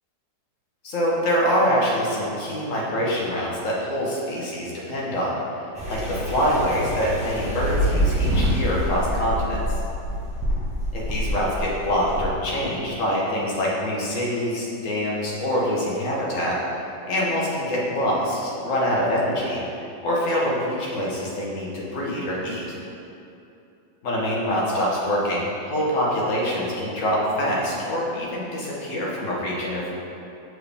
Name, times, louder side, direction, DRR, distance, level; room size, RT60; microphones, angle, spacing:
voice 1, 0.8-5.4 5.9-9.6 10.9-16.6 17.1-19.6 20.0-22.8 24.0-29.9, equal, 50° left, -5 dB, 1.4 m, -25 dB
sound 1, 5.7-12.2, equal, 5° right, 1.1 m, -26 dB
6.3 x 4.6 x 3.4 m, 2.8 s
omnidirectional pair, 1.9 m